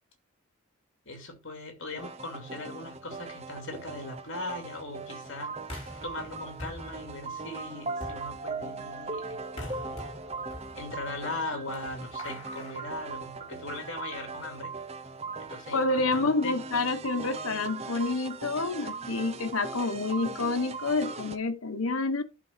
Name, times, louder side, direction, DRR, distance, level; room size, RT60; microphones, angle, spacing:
voice 1, 1.1-5.6 6.0-10.0 10.7-14.7 15.4-16.6, left 2 dB, 65° left, 2.6 m, -39 dB
sound 1, 2.0-21.4, right 4 dB, 30° right, 0.7 m, -39 dB
sound 2, 5.6-13.7, left 1 dB, 30° left, 5.8 m, -46 dB
voice 2, 15.7-22.2, left 3 dB, 90° left, 1.1 m, -28 dB
11.0 x 3.8 x 5.8 m
head